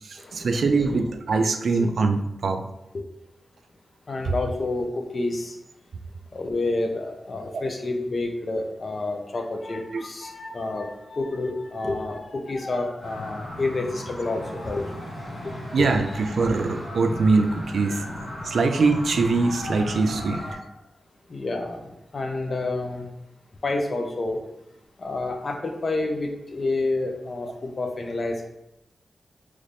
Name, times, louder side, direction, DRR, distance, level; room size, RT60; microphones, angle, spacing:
voice 1, 0.0-2.6 4.2-4.3 7.5-7.7 9.9-10.0 15.7-18.0 18.4-20.4, right 3 dB, 75° right, 6 dB, 0.3 m, -23 dB
voice 2, 4.1-5.6 6.3-14.8 15.8-15.9 21.3-21.8 22.1-23.1 23.6-24.4 25.0-28.5, left 2 dB, 45° left, 3 dB, 0.5 m, -29 dB
sound 1, 13.0-20.5, left 1 dB, 90° left, 1.2 m, -36 dB
3.1 x 2.6 x 3.3 m, 0.89 s
wide cardioid pair, 115°, 0 cm